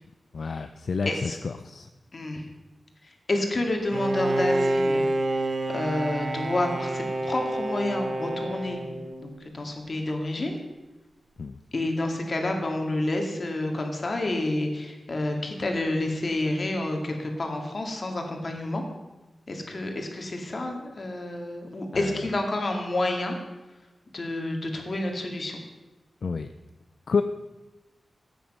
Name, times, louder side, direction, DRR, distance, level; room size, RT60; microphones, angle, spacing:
voice 1, 0.3-1.3 1.6-1.9 11.4-11.5 21.9-22.1 26.2-26.5 27.1-27.2, left 5 dB, 65° left, 9 dB, 0.5 m, -28 dB
voice 2, 1.1-1.4 2.1-2.4 3.0-5.0 5.7-8.8 9.2-10.6 11.7-18.8 19.5-23.4 24.1-25.6, left 2 dB, 40° left, 3 dB, 2.2 m, -29 dB
Bowed string instrument, 3.9-9.5, right 1 dB, 45° right, 1.1 m, -28 dB
14.0 x 9.0 x 5.6 m, 1.1 s
wide cardioid pair, 125°, 0 cm